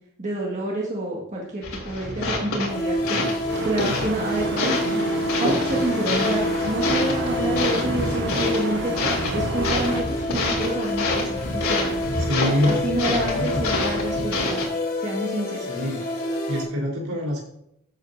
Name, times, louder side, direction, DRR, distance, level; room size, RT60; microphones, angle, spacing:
voice 1, 0.2-3.2 3.6-5.0 5.4-8.9 9.3-12.0 12.7-14.6 15.0-15.7, right 1 dB, 30° right, -3 dB, 1.8 m, -28 dB
sound 1, 1.6-14.6, left 2 dB, 70° left, 3.0 m, -28 dB
voice 2, 2.1-2.5 3.1-3.3 12.2-13.6 15.6-16.0 16.5-17.4, equal, 70° right, -1 dB, 3.9 m, -27 dB
sound 2, 2.6-16.6, left 1 dB, 45° left, 3.1 m, -28 dB
sound 3, 3.5-10.0, right 3 dB, 55° right, 0.7 m, -32 dB
13.5 x 8.1 x 2.7 m, 0.76 s
head